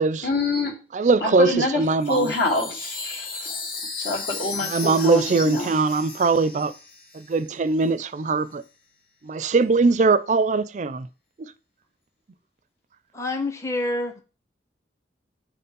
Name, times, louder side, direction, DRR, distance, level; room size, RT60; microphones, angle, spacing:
voice 1, 0.2-0.8 1.2-3.7 4.0-5.8, left 2 dB, 75° left, 2.3 m, -26 dB
voice 2, 1.0-2.3 4.7-6.7 7.3-8.6 9.2-11.1, right 4 dB, 40° right, 0.4 m, -21 dB
Chime, 2.0-7.6, left 4 dB, 55° left, 1.9 m, -35 dB
voice 3, 13.1-14.2, left 2 dB, 15° left, 0.6 m, -27 dB
7.3 x 4.3 x 5.3 m
head